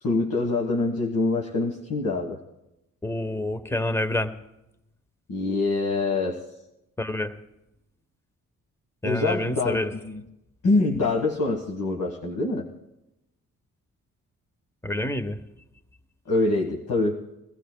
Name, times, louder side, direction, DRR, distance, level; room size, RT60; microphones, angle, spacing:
voice 1, 0.0-2.4 5.3-6.4 9.0-10.2 10.6-12.7 16.3-17.2, left 3 dB, 65° left, 1 dB, 1.5 m, -25 dB
voice 2, 3.0-4.3 7.0-7.3 9.0-9.9 14.8-15.4, left 1 dB, 10° left, 9 dB, 1.0 m, -27 dB
23.0 x 15.0 x 2.2 m, 0.90 s
supercardioid pair, 50°, 33 cm